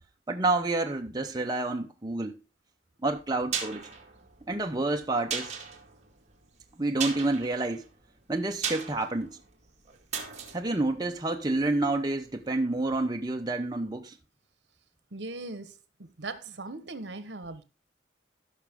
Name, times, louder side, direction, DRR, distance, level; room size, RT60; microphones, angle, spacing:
voice 1, 0.3-2.4 3.0-3.9 4.5-5.5 6.8-7.8 8.3-9.4 10.5-14.1, right 2 dB, 20° right, 0.8 m, -29 dB
sound 1, 3.1-12.0 12.3-12.4, right 7 dB, 35° right, 2.1 m, -38 dB
voice 2, 15.1-15.7 16.2-17.6, right 2 dB, 70° right, 1.2 m, -39 dB
15.5 x 6.1 x 3.6 m
head